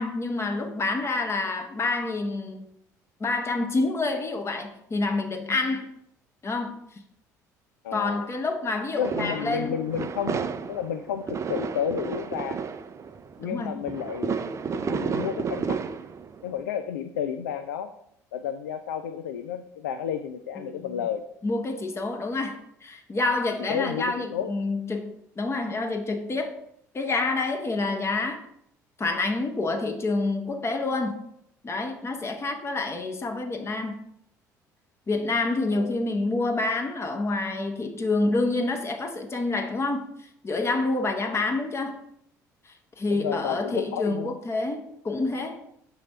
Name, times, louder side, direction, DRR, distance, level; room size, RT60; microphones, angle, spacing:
voice 1, 0.0-2.6 3.2-5.9 6.4-6.8 7.9-9.7 13.4-13.7 20.6-21.1 21.4-26.5 26.9-28.4 29.0-31.2 31.6-34.0 35.1-40.1 40.4-42.0 43.0-45.6, left 3 dB, 30° left, 1.1 m, -28 dB
voice 2, 7.8-8.3 9.0-12.7 13.4-14.4 14.7-15.8 16.4-17.9 18.3-21.2 23.7-24.5 35.7-36.0 43.1-44.4, left 8 dB, 80° left, 0.4 m, -31 dB
sound 1, 9.0-16.6, right 6 dB, 35° right, 0.4 m, -32 dB
6.1 x 3.2 x 5.4 m
hypercardioid pair, 55°, 9 cm